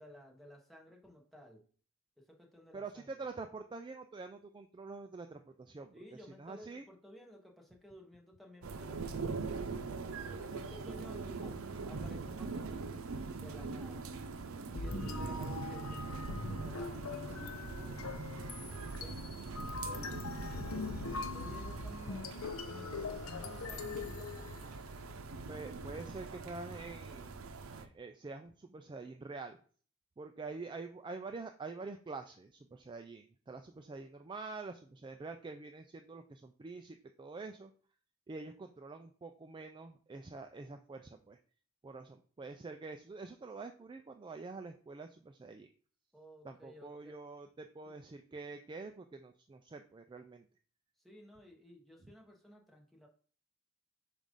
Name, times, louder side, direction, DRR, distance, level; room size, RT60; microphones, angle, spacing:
voice 1, 0.0-1.6 2.2-3.2 5.9-9.7 10.3-13.1 13.3-14.1 14.7-18.2 18.7-19.3 19.7-20.0 20.6-24.5 46.1-47.1 51.0-53.1, equal, ahead, 0 dB, 1.1 m, -55 dB
voice 2, 2.7-6.0 6.4-6.8 25.5-27.4 27.7-29.6 30.2-37.7 38.3-41.4 41.8-45.7 46.4-50.5, right 3 dB, 20° right, 6 dB, 0.3 m, -46 dB
sound 1, 8.6-27.9, right 4 dB, 90° right, 0.6 m, -42 dB
sound 2, 14.7-25.0, left 4 dB, 90° left, 0.6 m, -43 dB
7.2 x 2.5 x 5.2 m, 0.43 s
head